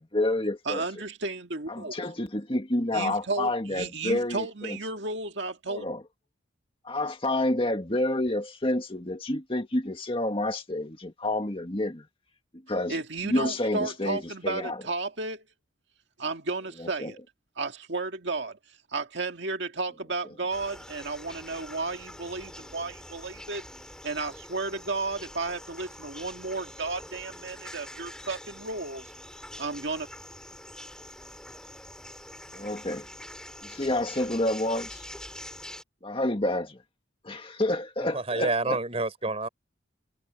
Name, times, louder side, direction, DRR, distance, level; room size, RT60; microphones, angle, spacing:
voice 1, 0.0-0.8 1.7-4.8 5.7-6.0 6.8-12.1 12.7-13.0 13.2-14.8 16.8-17.1 32.5-33.1 33.6-35.0 36.0-36.8 37.2-38.8, left 1 dB, 30° left, 1.9 m, -29 dB
voice 2, 0.7-2.0 2.9-5.9 12.9-15.4 16.2-17.2 17.6-18.6 18.9-23.6 24.0-29.1 29.6-30.1, right 3 dB, 60° right, 2.1 m, -33 dB
sound 1, 20.5-35.8, left 1 dB, 5° left, 3.8 m, -45 dB
voice 3, 38.1-39.5, right 2 dB, 30° right, 4.0 m, -28 dB
head